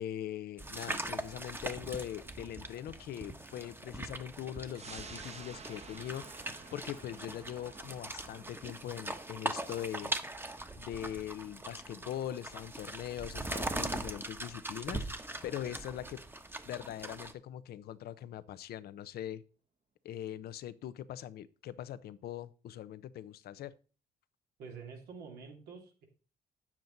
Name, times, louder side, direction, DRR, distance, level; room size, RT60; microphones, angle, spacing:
voice 1, 0.0-10.2 10.8-16.2 16.6-19.4 20.0-23.7, left 11 dB, 80° left, 15 dB, 0.7 m, -42 dB
sound 1, 0.6-17.3, right 2 dB, 15° right, 1.1 m, -41 dB
sound 2, 4.8-15.7 16.1-16.2, right 5 dB, 40° right, 1.2 m, -54 dB
voice 2, 24.6-26.0, right 5 dB, 90° right, 1 dB, 2.9 m, -47 dB
9.3 x 7.4 x 3.9 m, 0.36 s
cardioid pair, 75°, 16 cm